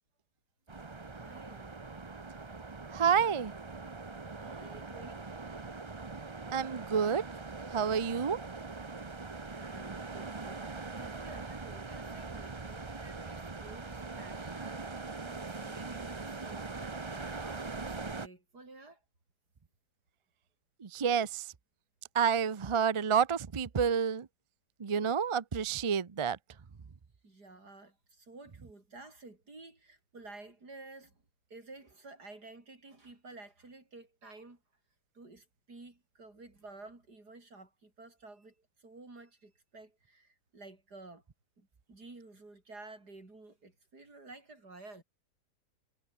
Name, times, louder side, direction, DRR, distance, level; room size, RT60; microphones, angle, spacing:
sound 1, 0.7-18.3, right 3 dB, 20° right, 0.8 m, -42 dB
voice 1, 1.1-1.7 4.3-5.3 9.5-14.8 15.2-19.0 27.2-31.2 31.5-34.6 35.1-38.5 38.8-41.2 41.6-45.0, right 3 dB, 70° right, 5.8 m, -52 dB
voice 2, 2.9-3.5 6.5-7.2 7.7-8.4 20.8-21.4 22.1-24.3 24.8-26.4, right 7 dB, 40° right, 0.4 m, -29 dB
omnidirectional pair, 1.8 m